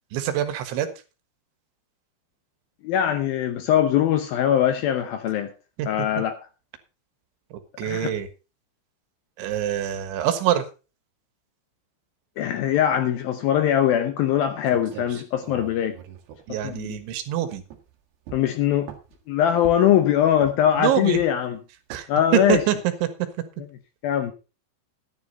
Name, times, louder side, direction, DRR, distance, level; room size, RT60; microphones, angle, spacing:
voice 1, 0.1-0.9 5.8-5.9 7.8-8.3 9.4-10.6 16.5-17.6 20.8-21.2 21.9-22.1 22.3-23.3, right 11 dB, 85° right, 3.9 m, -24 dB
voice 2, 2.8-5.5 5.9-6.4 7.8-8.1 12.4-15.9 16.6-17.0 18.3-18.9 19.3-21.6 22.1-22.6 24.0-24.3, left 10 dB, 75° left, 2.2 m, -21 dB
sound 1, 14.4-14.5 14.7-17.3 17.7-17.9 18.3-19.2 19.6-20.0 20.4-20.8 21.1-21.5 21.9-22.1 22.5-22.8, right 9 dB, 70° right, 3.7 m, -42 dB
13.0 x 10.5 x 4.1 m
omnidirectional pair, 5.2 m